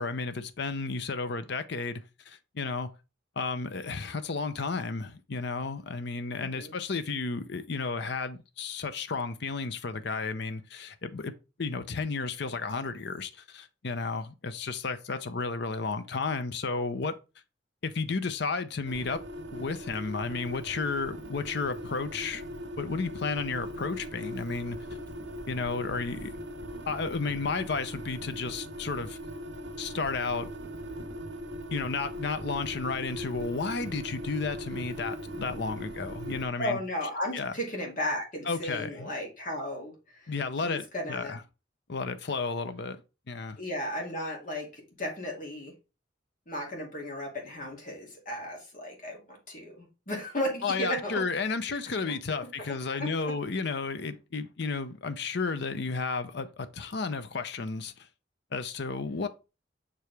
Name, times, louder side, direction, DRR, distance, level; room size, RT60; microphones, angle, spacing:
voice 1, 0.0-2.0 2.3-2.9 3.4-11.3 11.6-17.1 17.8-19.2 19.5-22.4 22.8-24.8 25.5-26.4 26.9-29.2 29.8-30.5 31.7-36.8 37.3-37.5 38.5-39.1 40.3-41.4 41.9-43.0 43.3-43.6 50.6-58.1 58.5-59.3, left 4 dB, 60° left, 0.7 m, -32 dB
voice 2, 6.4-6.7 36.6-40.3 40.6-41.3 43.6-45.7 46.5-51.2 51.7-51.8 52.6-53.3, left 1 dB, 45° left, 2.4 m, -35 dB
sound 1, 18.9-36.5, equal, 75° right, 1.0 m, -40 dB
6.1 x 4.7 x 3.3 m
head